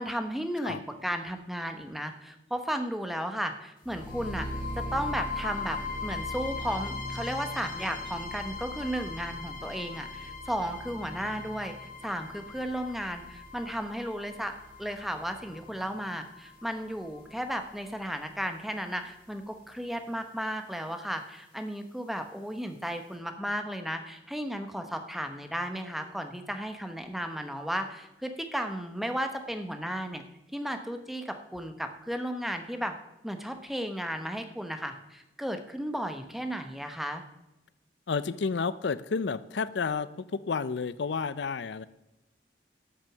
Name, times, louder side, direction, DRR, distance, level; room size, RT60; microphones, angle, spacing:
voice 1, 0.0-4.5 4.8-11.7 12.0-14.5 14.8-30.2 30.5-32.9 33.2-37.2, equal, ahead, 6 dB, 0.9 m, -34 dB
sound 1, 3.8-17.8, left 3 dB, 50° left, 2.3 m, -39 dB
voice 2, 38.1-41.8, left 5 dB, 85° left, 16 dB, 0.5 m, -31 dB
12.0 x 6.3 x 7.2 m, 0.94 s
head